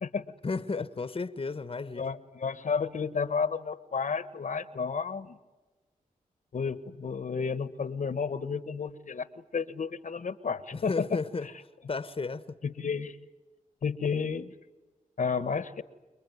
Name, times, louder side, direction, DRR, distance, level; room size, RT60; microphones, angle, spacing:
voice 1, 0.4-2.1 10.7-11.5 11.9-12.6, left 4 dB, 40° left, 1.2 m, -33 dB
voice 2, 2.0-5.4 6.5-9.3 9.5-11.2 12.6-13.2 13.8-14.5 15.2-15.8, left 5 dB, 65° left, 1.3 m, -31 dB
29.0 x 20.5 x 9.5 m
cardioid pair, 55°, 14 cm